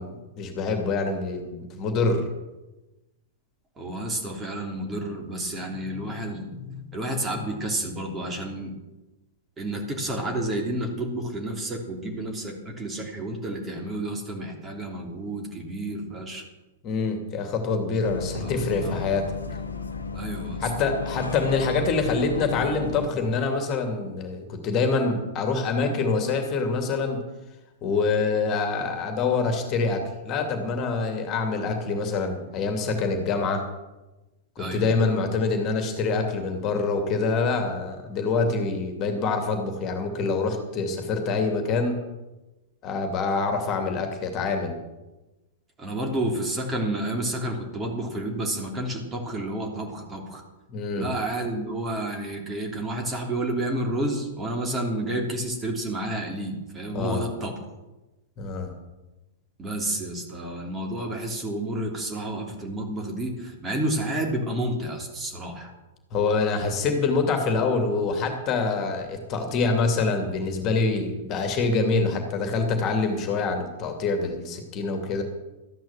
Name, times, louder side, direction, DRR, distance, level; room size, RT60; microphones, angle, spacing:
voice 1, 0.0-2.2 16.8-19.3 20.6-27.2 27.8-33.6 34.6-42.0 42.8-44.8 50.7-51.1 56.9-57.2 58.4-58.7 66.1-75.2, left 4 dB, 30° left, 5 dB, 2.7 m, -25 dB
voice 2, 3.8-8.7 9.6-16.4 18.4-19.3 20.1-20.7 34.6-34.9 45.8-50.4 50.9-57.5 59.6-65.7, right 1 dB, 20° right, 2 dB, 3.2 m, -30 dB
Bus, 18.0-23.1, left 4 dB, 75° left, 1.3 m, -34 dB
14.0 x 10.5 x 7.4 m, 1.1 s
figure-of-eight pair, 105°, 0 cm